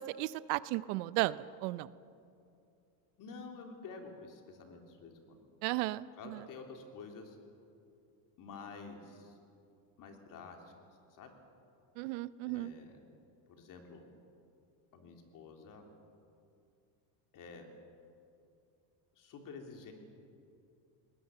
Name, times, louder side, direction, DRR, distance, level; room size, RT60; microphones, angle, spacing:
voice 1, 0.0-1.9 5.6-6.5 12.0-12.7, right 18 dB, 90° right, 18 dB, 0.7 m, -35 dB
voice 2, 3.2-5.4 6.2-7.4 8.4-9.4 10.0-10.7 11.1-11.3 12.4-13.0 13.5-14.0 14.9-15.8 17.3-17.7 19.2-19.9, left 4 dB, 45° left, 3 dB, 3.3 m, -49 dB
20.5 x 20.0 x 7.7 m, 2.6 s
cardioid pair, 135°, 44 cm